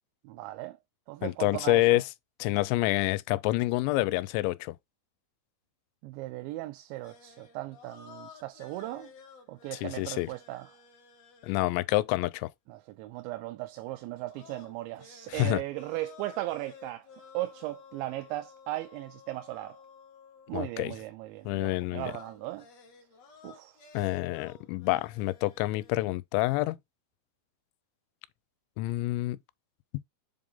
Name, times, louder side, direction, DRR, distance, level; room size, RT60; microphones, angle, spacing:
voice 1, 0.2-0.8 1.1-2.0 6.0-9.1 9.5-10.7 12.7-17.1 17.3-19.8 20.5-22.7 23.4-23.8, right 17 dB, 85° right, 3.0 m, -37 dB
voice 2, 1.2-2.0 2.4-4.8 9.8-10.3 11.4-12.5 15.3-15.6 20.5-20.9 21.5-22.1 23.9-26.8 28.8-29.4, left 19 dB, 90° left, 2.9 m, -27 dB
sound 1, 6.9-12.2 14.3-20.8 22.0-26.1, left 5 dB, 65° left, 1.7 m, -54 dB
7.6 x 3.5 x 3.7 m
omnidirectional pair, 5.2 m